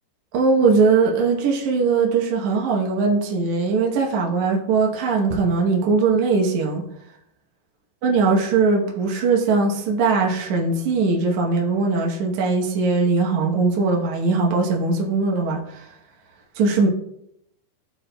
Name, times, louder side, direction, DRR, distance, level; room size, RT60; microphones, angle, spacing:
voice 1, 0.3-6.8 8.0-15.9 16.6-16.9, right 4 dB, 75° right, -1 dB, 1.7 m, -20 dB
14.5 x 4.8 x 2.2 m, 0.77 s
omnidirectional pair, 4.7 m